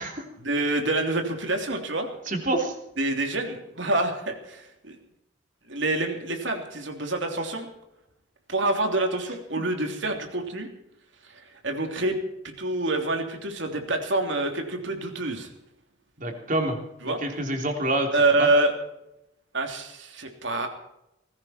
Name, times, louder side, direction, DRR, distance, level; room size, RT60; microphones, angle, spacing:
voice 1, 0.4-2.1 3.0-5.0 5.7-7.7 8.5-10.7 11.3-15.5 17.0-17.2 18.1-18.7 19.5-20.7, right 2 dB, 65° right, 4 dB, 3.2 m, -27 dB
voice 2, 2.2-2.8 16.2-18.1 18.4-18.5, right 1 dB, 40° right, 3 dB, 3.4 m, -27 dB
19.5 x 16.0 x 4.5 m, 0.83 s
head